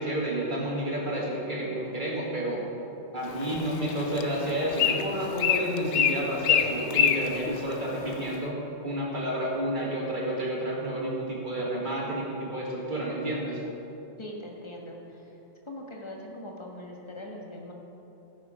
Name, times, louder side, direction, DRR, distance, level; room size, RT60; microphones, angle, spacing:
voice 1, 0.0-2.6 3.1-8.6 8.8-13.6, right 1 dB, 40° right, -4 dB, 2.2 m, -30 dB
Bird, 3.2-8.4, left 8 dB, 65° left, 0.9 m, -28 dB
voice 2, 14.2-15.4 15.7-17.7, left 1 dB, 20° left, -1 dB, 1.5 m, -41 dB
14.5 x 6.8 x 5.1 m, 2.9 s
omnidirectional pair, 1.3 m